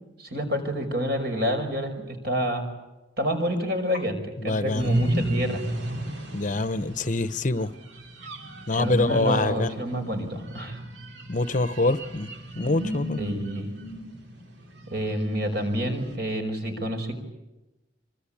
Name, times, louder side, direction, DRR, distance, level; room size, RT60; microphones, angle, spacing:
voice 1, 0.2-2.6 3.2-5.6 8.7-10.8 13.2-13.7 14.9-17.1, equal, 50° right, 5 dB, 5.4 m, -28 dB
voice 2, 4.4-4.9 6.3-7.7 8.7-9.7 11.3-12.3 12.6-13.2, left 2 dB, 40° left, 12 dB, 1.0 m, -25 dB
sound 1, 4.8-16.2, right 1 dB, 70° right, 4.1 m, -34 dB
25.5 x 25.0 x 8.7 m, 1.0 s
head